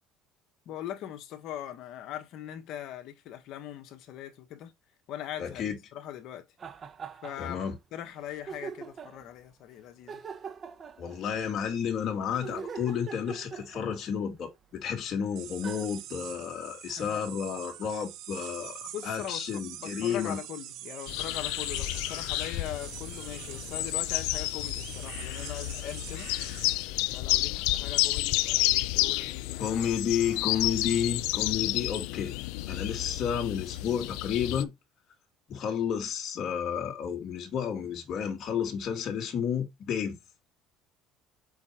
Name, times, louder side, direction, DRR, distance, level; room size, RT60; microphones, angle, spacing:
voice 1, 0.6-4.7 5.1-6.5 7.2-10.2 17.0-17.2 18.9-26.3 27.1-29.7, left 11 dB, 65° left, 1.5 m, -41 dB
voice 2, 5.4-5.8 7.4-7.8 11.0-20.4 29.6-32.3 32.7-34.7 35.5-40.2, left 8 dB, 50° left, 2.3 m, -31 dB
sound 1, 6.6-7.7 8.0-8.1 8.5-9.2 10.1-11.5 12.4-14.2 15.1-15.2 15.6-15.9, right 6 dB, 35° right, 1.2 m, -42 dB
sound 2, 15.4-26.9, right 12 dB, 70° right, 1.1 m, -44 dB
sound 3, 21.1-34.6, left 18 dB, 85° left, 0.5 m, -31 dB
6.9 x 4.6 x 4.5 m
cardioid pair, 110°, 0 cm